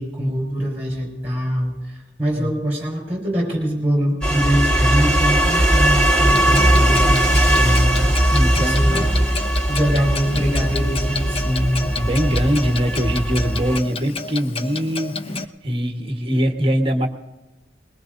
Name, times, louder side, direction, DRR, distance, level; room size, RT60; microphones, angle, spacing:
voice 1, 0.0-9.1 9.7-11.9, equal, 10° right, -1 dB, 4.7 m, -23 dB
sound 1, 4.2-13.8, right 1 dB, 5° left, 2.0 m, -19 dB
Clock, 6.2-15.4, left 3 dB, 35° left, 0.6 m, -31 dB
voice 2, 8.3-9.2 12.0-17.1, equal, 30° right, 4 dB, 1.3 m, -22 dB
22.0 x 21.0 x 2.6 m, 1.1 s
head